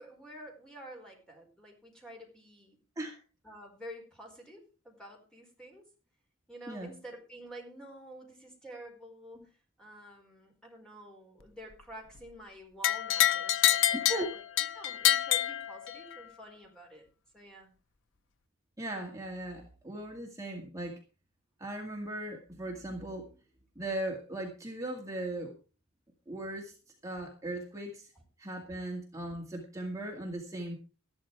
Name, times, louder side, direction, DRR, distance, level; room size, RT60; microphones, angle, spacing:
voice 1, 0.0-2.8 3.4-5.8 6.5-14.4 14.7-17.0 17.3-17.7, right 1 dB, 5° left, 1 dB, 4.6 m, -49 dB
sound 1, 12.8-16.2, left 12 dB, 65° left, 0.6 m, -27 dB
voice 2, 13.9-14.3 18.8-21.0 21.6-23.3 23.8-25.5 26.3-26.8 27.0-28.1 28.4-30.8, right 1 dB, 15° right, 0 dB, 2.1 m, -38 dB
13.5 x 11.5 x 4.7 m, 0.35 s
head